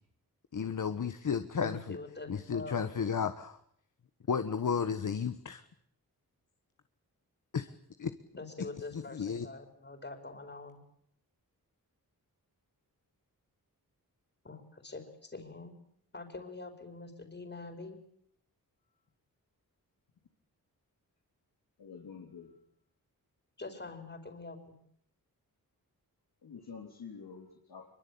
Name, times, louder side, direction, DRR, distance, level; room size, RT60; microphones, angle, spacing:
voice 1, 0.5-2.0 2.3-3.6 4.3-5.6 7.5-7.7 8.0-8.1 8.6-8.7 8.9-9.5, left 6 dB, 55° left, 10 dB, 1.5 m, -33 dB
voice 2, 1.6-2.9 8.4-10.8 14.4-15.7 16.1-18.0 23.6-24.7, left 3 dB, 30° left, 6 dB, 4.9 m, -45 dB
voice 3, 21.8-22.5 26.4-27.9, left 6 dB, 80° left, 0 dB, 3.8 m, -48 dB
25.5 x 24.0 x 8.7 m, 0.68 s
wide cardioid pair, 110°, 37 cm